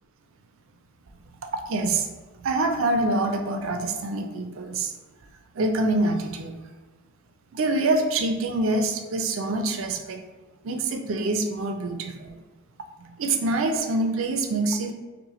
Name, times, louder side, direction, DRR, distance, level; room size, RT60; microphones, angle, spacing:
voice 1, 1.5-2.1 2.4-4.9 5.5-6.6 7.5-10.2 10.6-12.3 13.0-14.9, right 2 dB, 75° right, 6 dB, 0.4 m, -25 dB
5.5 x 2.2 x 3.0 m, 1.3 s
head